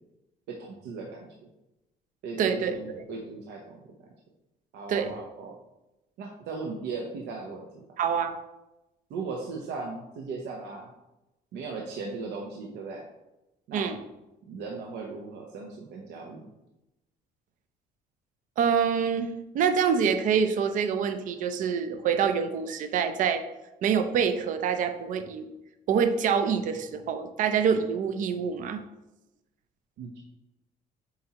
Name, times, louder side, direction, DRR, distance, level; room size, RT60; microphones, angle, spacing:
voice 1, 0.5-1.3 2.2-3.8 4.7-5.5 6.2-7.8 9.1-10.9 11.5-13.0 13.7-13.9 14.5-16.5 30.0-30.3, right 4 dB, 80° right, 0 dB, 0.9 m, -37 dB
voice 2, 2.4-3.0 4.9-5.1 8.0-8.3 13.7-14.0 18.6-23.4 23.8-25.5 25.9-28.8, right 7 dB, 50° right, 9 dB, 0.5 m, -26 dB
7.6 x 4.3 x 2.9 m, 0.95 s
cardioid pair, 165°, 17 cm